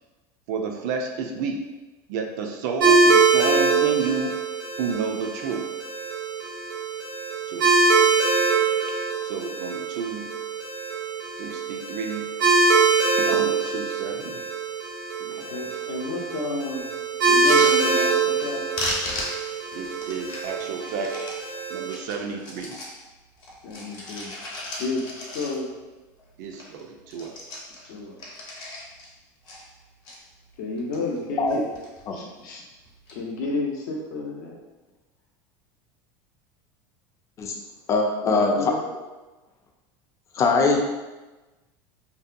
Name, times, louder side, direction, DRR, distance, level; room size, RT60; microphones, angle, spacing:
voice 1, 0.5-1.6 2.1-4.4 4.8-5.7 7.5-7.7 9.2-10.3 11.4-12.3 13.2-14.4 15.2-15.5 19.7-21.2 21.7-22.8 26.4-27.4, right 5 dB, 70° right, 3 dB, 0.4 m, -31 dB
sound 1, 2.8-22.0, right 4 dB, 90° right, 0.8 m, -23 dB
voice 2, 15.5-16.8 17.3-18.6 23.6-24.3 24.8-25.7 27.8-28.2 30.6-31.6 32.1-32.6 33.1-34.6 38.2-38.8, left 2 dB, 75° left, -1 dB, 0.6 m, -31 dB
sound 2, 17.2-18.5 18.7-21.4 21.8-23.0 23.4-25.8 26.2-26.3 26.5-26.8 27.1-29.1 29.4-30.2 30.7-31.2 31.5-32.0 32.9-33.1, left 1 dB, 45° left, 0.8 m, -35 dB
voice 3, 37.9-38.5 40.4-40.8, left 4 dB, 30° left, 2 dB, 0.4 m, -21 dB
2.6 x 2.1 x 2.5 m, 1.2 s
supercardioid pair, 120°, 10 cm